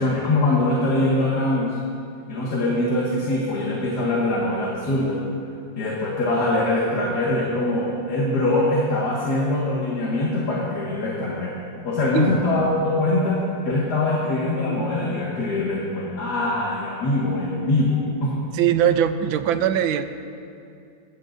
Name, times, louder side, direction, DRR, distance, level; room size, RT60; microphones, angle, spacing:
voice 1, 0.0-1.8 2.3-5.2 5.8-11.6 11.8-18.4, left 2 dB, 55° left, -5 dB, 2.4 m, -23 dB
voice 2, 18.5-20.0, right 10 dB, 85° right, 10 dB, 1.4 m, -21 dB
21.5 x 15.5 x 2.7 m, 2.5 s
omnidirectional pair, 2.1 m